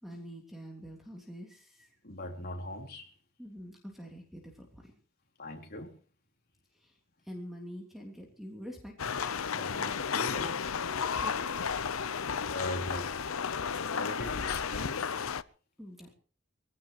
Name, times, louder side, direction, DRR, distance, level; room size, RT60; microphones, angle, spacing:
voice 1, 0.0-2.0 3.4-4.9 6.7-7.0 7.2-9.3 11.2-11.5 15.8-16.1, equal, ahead, 3.3 m, -46 dB
voice 2, 2.0-3.1 5.4-6.0 9.5-10.6 12.5-13.1 13.9-15.1, left 1 dB, 50° left, 4.1 m, -39 dB
sound 1, 9.0-15.4, left 6 dB, 75° left, 0.7 m, -33 dB
24.0 x 17.0 x 3.1 m
head